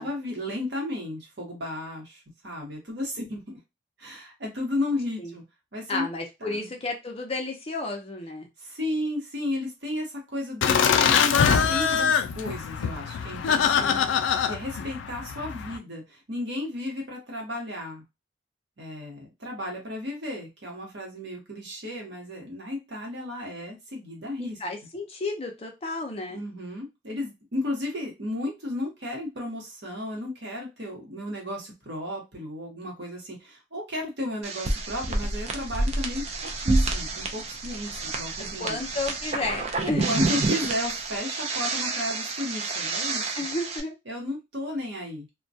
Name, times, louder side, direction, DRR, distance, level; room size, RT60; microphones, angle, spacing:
voice 1, 0.0-3.6 4.0-5.4 5.7-6.1 6.4-6.7 8.6-14.2 14.5-18.0 18.8-24.6 26.3-38.8 40.0-43.4 44.1-45.3, left 1 dB, 60° right, 0 dB, 1.0 m, -34 dB
voice 2, 5.9-8.5 13.5-14.2 24.4-26.4 38.6-40.1 43.4-43.9, left 2 dB, 30° left, 2 dB, 0.5 m, -32 dB
Laughter, 10.6-15.8, left 7 dB, 85° left, 0.3 m, -23 dB
sound 1, 34.4-43.8, right 3 dB, 35° right, 0.4 m, -29 dB
2.2 x 2.2 x 2.6 m, 0.23 s
head